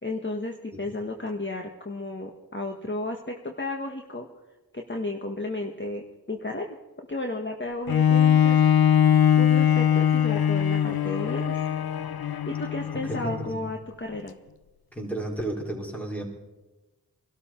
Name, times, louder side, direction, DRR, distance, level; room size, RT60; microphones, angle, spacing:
voice 1, 0.0-4.3 4.7-8.6 9.4-11.6 12.5-14.4, left 2 dB, 30° left, 3 dB, 1.4 m, -33 dB
Bowed string instrument, 7.9-13.5 14.1-14.2, left 9 dB, 65° left, 0.7 m, -21 dB
voice 2, 13.1-13.6 14.9-16.2, right 1 dB, 5° left, 0 dB, 4.3 m, -32 dB
23.5 x 12.5 x 4.4 m, 1.1 s
wide cardioid pair, 45°, 40 cm